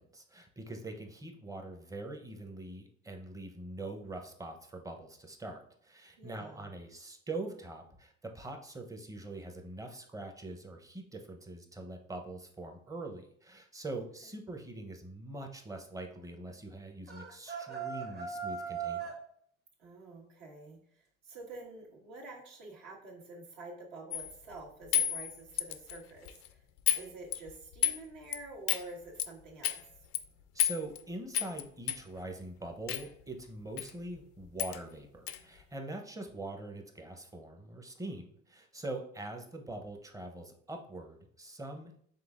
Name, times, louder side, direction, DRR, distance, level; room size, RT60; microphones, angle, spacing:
voice 1, 0.0-19.2 30.5-42.1, right 2 dB, 10° right, 3 dB, 0.7 m, -43 dB
voice 2, 6.2-6.7 19.8-26.6 26.9-29.7, right 2 dB, 65° right, -3 dB, 1.6 m, -48 dB
sound 1, 17.1-19.2, right 6 dB, 35° right, 1.1 m, -38 dB
sound 2, 24.1-24.4 24.9-26.0 26.3-26.5 26.9-27.0 27.3-28.0 28.3-28.4 28.7-28.9 29.2-29.3 29.6-29.8 30.1-30.2 30.6-31.0 31.3-31.6 31.9-32.0 32.9-33.1 33.8-33.9 34.2-34.3 34.6-34.8 35.3-35.4, left 12 dB, 75° left, 0.5 m, -31 dB
5.3 x 3.6 x 2.4 m, 0.63 s
supercardioid pair, 95°, 31 cm